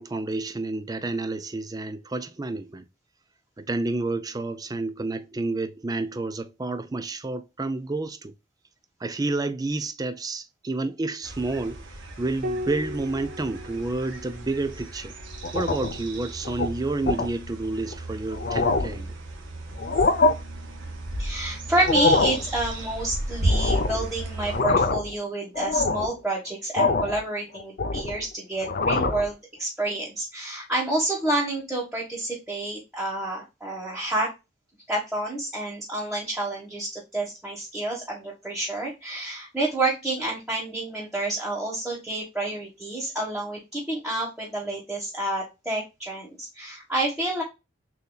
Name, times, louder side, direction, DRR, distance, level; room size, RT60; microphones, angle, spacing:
voice 1, 0.0-2.9 3.6-8.3 9.0-11.8 12.2-15.1 15.5-19.2, right 2 dB, 20° right, 0.4 m, -30 dB
sound 1, 11.2-24.6, right 1 dB, 70° right, 1.3 m, -34 dB
Piano, 12.4-17.3 18.9-19.7, left 1 dB, 45° right, 0.9 m, -39 dB
sound 2, 15.4-16.0 16.5-16.7 17.1-17.3 17.9-18.0 18.3-19.0 19.8-20.3 21.7-22.4 23.5-24.0 24.4-25.1 25.6-26.1 26.8-27.2 27.6-28.2 28.6-29.3, left 3 dB, 50° left, 0.6 m, -24 dB
voice 2, 21.2-34.3 34.9-47.4, right 2 dB, 5° right, 1.3 m, -29 dB
6.6 x 2.8 x 2.2 m
head